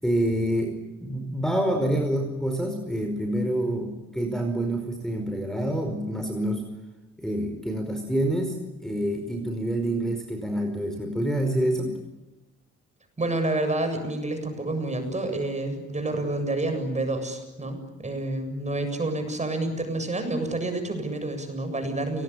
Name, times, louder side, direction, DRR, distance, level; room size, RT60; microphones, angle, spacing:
voice 1, 0.0-6.6 7.2-12.0, right 1 dB, ahead, 5 dB, 5.1 m, -27 dB
voice 2, 13.2-22.2, right 2 dB, 25° right, 7 dB, 7.6 m, -29 dB
30.0 x 20.0 x 9.9 m, 1.0 s
cardioid pair, 90°, 30 cm